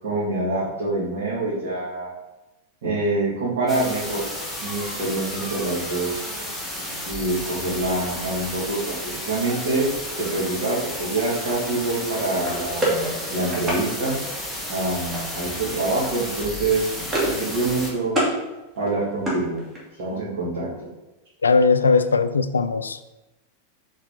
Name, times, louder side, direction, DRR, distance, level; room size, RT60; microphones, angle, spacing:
voice 1, 0.0-2.1 2.8-4.2 4.6-6.3 7.1-9.9 10.2-13.0 13.3-14.1 14.7-16.8 17.2-18.1 18.8-19.6 20.0-20.7, right 2 dB, 55° right, -9 dB, 2.3 m, -25 dB
sound 1, 3.7-17.9, left 1 dB, ahead, 1.7 m, -32 dB
sound 2, 12.4-13.8 15.1-15.5 15.8-16.1 16.4-17.5 17.7-18.4 18.8-20.0, right 1 dB, 15° right, 2.4 m, -27 dB
voice 2, 21.4-23.0, left 4 dB, 75° left, 12 dB, 0.4 m, -19 dB
6.3 x 4.8 x 3.8 m, 1.0 s
figure-of-eight pair, 90°, 0 cm